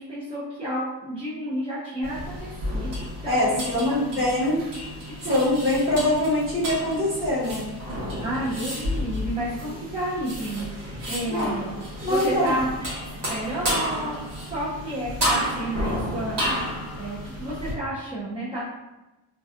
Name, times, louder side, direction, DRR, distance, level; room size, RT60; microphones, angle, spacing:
voice 1, 0.0-2.9 3.2-4.6 5.2-5.4 8.2-11.7 12.0-12.7 13.1-14.1 14.5-16.4 16.7-18.7, right 1 dB, 15° right, -10 dB, 0.6 m, -31 dB
sound 1, 2.0-17.7, equal, 70° right, 1.2 m, -31 dB
voice 2, 3.3-4.6 5.3-7.7 11.3-11.5 12.0-12.6, left 1 dB, 30° right, -8 dB, 1.2 m, -23 dB
2.5 x 2.2 x 2.4 m, 1.0 s
wide cardioid pair, 125°, 42 cm